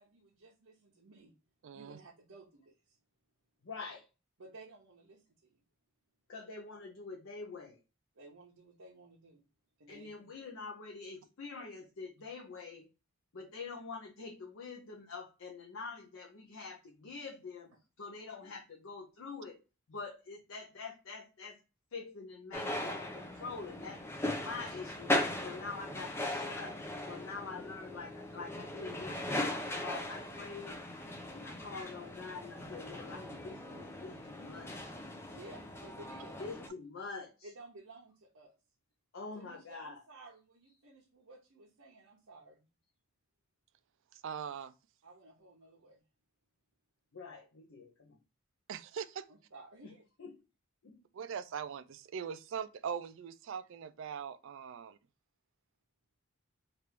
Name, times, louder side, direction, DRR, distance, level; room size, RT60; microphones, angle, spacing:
voice 1, 0.0-1.3 1.7-3.0 4.4-5.6 8.2-9.4 9.8-10.3 35.3-36.4 37.4-38.5 39.3-42.7 45.0-46.0 49.3-50.0, right 2 dB, 75° right, 0.8 m, -55 dB
voice 2, 1.6-2.0 44.1-44.7 48.7-49.2 51.1-55.0, right 7 dB, 60° right, 0.3 m, -41 dB
voice 3, 3.6-4.1 6.3-7.8 9.9-12.9 13.3-17.7 18.0-19.6 19.9-21.6 21.9-24.0 24.4-26.8 27.1-30.8 31.3-34.9 36.4-37.5 39.1-40.0 47.1-48.2 49.8-50.4 50.8-51.0, left 4 dB, 60° left, 0.6 m, -46 dB
sound 1, 22.5-36.7, left 1 dB, 10° left, 0.5 m, -39 dB
3.3 x 2.5 x 4.3 m
head